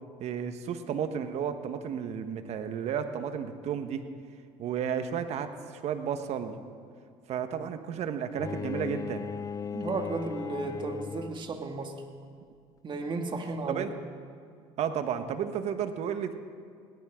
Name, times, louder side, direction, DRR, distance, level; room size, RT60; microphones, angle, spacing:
voice 1, 0.2-4.0 4.6-6.5 7.3-9.3 13.7-13.9 14.8-16.3, right 8 dB, 60° right, 8 dB, 1.4 m, -32 dB
Bowed string instrument, 8.4-11.6, left 6 dB, 30° left, 0.3 m, -37 dB
voice 2, 9.7-12.0 12.8-14.0, right 3 dB, 40° right, 3 dB, 2.2 m, -34 dB
21.5 x 17.0 x 3.8 m, 2.3 s
supercardioid pair, 75°, 13 cm